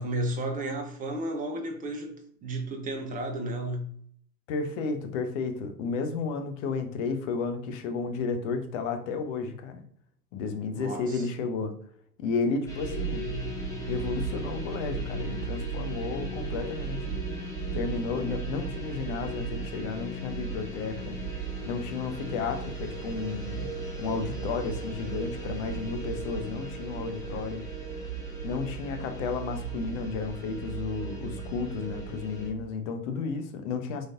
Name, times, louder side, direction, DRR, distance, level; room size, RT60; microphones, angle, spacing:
voice 1, 0.0-2.1 2.4-3.9 10.7-11.3, right 1 dB, 15° right, 0.8 m, -33 dB
voice 2, 4.5-9.8 10.3-11.7 12.2-13.3 13.9-17.2 17.7-21.2 21.6-23.7 24.0-27.6 28.4-34.1, left 4 dB, 50° left, 0.8 m, -32 dB
sound 1, 12.7-32.5, right 3 dB, 5° left, 1.1 m, -35 dB
4.1 x 3.2 x 2.5 m
figure-of-eight pair, 85°, 48 cm